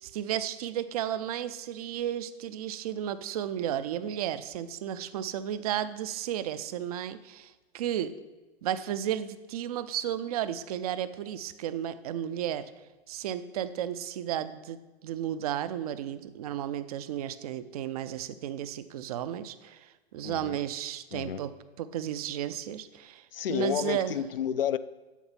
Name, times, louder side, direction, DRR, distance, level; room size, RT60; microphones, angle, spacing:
voice 1, 0.0-8.1 8.6-12.7 13.1-21.5 21.8-24.1, right 10 dB, 35° right, 13 dB, 0.5 m, -33 dB
voice 2, 20.2-20.6 21.1-21.4 23.3-24.8, left 9 dB, 60° left, 15 dB, 0.5 m, -30 dB
7.8 x 7.3 x 5.4 m, 1.2 s
figure-of-eight pair, 105°, 33 cm